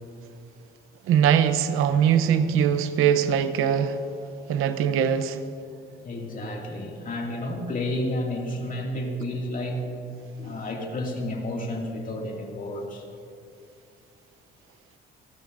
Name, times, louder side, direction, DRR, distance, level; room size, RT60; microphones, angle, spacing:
voice 1, 1.1-4.0 4.5-5.4, right 8 dB, 90° right, 0.8 m, -21 dB
voice 2, 6.0-9.9 10.4-13.0, left 1 dB, 40° left, 2.3 m, -31 dB
28.5 x 12.5 x 2.6 m
cardioid pair, 120°, 21 cm